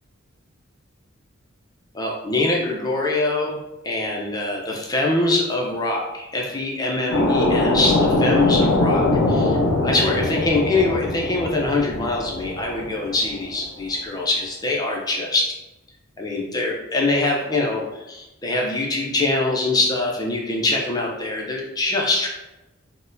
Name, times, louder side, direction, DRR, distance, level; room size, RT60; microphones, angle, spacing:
voice 1, 1.9-3.6 3.8-9.6 9.8-15.5 16.2-22.3, left 2 dB, 20° left, -1 dB, 0.5 m, -23 dB
sound 1, 7.1-13.5, left 2 dB, 85° left, 0.5 m, -21 dB
3.9 x 2.1 x 2.6 m, 0.98 s
head